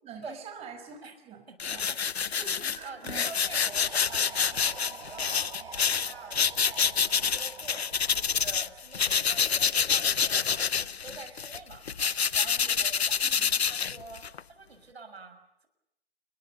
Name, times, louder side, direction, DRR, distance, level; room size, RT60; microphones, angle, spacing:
voice 1, 0.0-1.8 2.4-3.3 3.6-3.7 13.2-13.5, right 6 dB, 20° right, 4 dB, 5.4 m, -45 dB
voice 2, 1.5-2.4 2.8-7.8 8.1-13.2 13.7-14.2 14.5-15.7, right 4 dB, 80° right, 7 dB, 6.7 m, -47 dB
sound 1, 1.6-8.7 8.9-14.4, left 7 dB, 85° left, 0.8 m, -27 dB
sound 2, 3.4-9.3, right 6 dB, 65° right, 4.0 m, -47 dB
28.5 x 22.5 x 7.0 m, 0.85 s
figure-of-eight pair, 130°, 31 cm